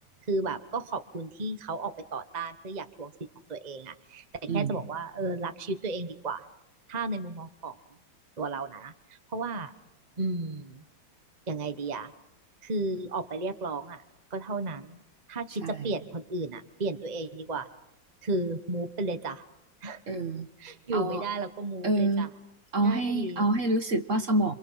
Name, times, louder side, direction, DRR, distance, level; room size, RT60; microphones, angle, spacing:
voice 1, 0.3-3.1 3.5-4.2 4.5-6.5 6.9-7.8 8.4-9.7 10.2-10.8 11.5-12.1 12.6-14.0 14.3-15.0 15.3-17.7 18.2-19.4 19.8-20.0 20.6-22.3 22.8-23.4, right 3 dB, 25° right, 9 dB, 1.2 m, -33 dB
voice 2, 4.5-4.8 15.6-15.9 20.1-20.5 20.9-21.2 21.8-22.3 22.7-24.5, right 2 dB, 45° right, 8 dB, 1.5 m, -27 dB
28.0 x 26.0 x 5.7 m, 0.84 s
omnidirectional pair, 2.2 m